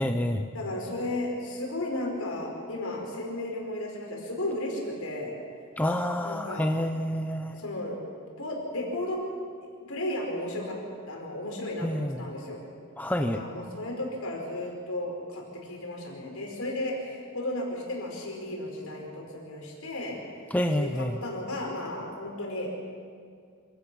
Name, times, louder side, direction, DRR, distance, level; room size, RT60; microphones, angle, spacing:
voice 1, 0.0-0.5 5.8-7.6 11.8-12.2 13.0-13.4 20.5-21.2, left 1 dB, 5° left, 6 dB, 0.6 m, -28 dB
voice 2, 0.5-5.3 6.2-6.7 7.5-8.1 8.4-9.2 9.9-10.8 11.1-12.6 13.1-20.2 20.8-22.7, left 1 dB, 70° left, 0 dB, 5.2 m, -34 dB
26.5 x 16.5 x 6.3 m, 2.1 s
head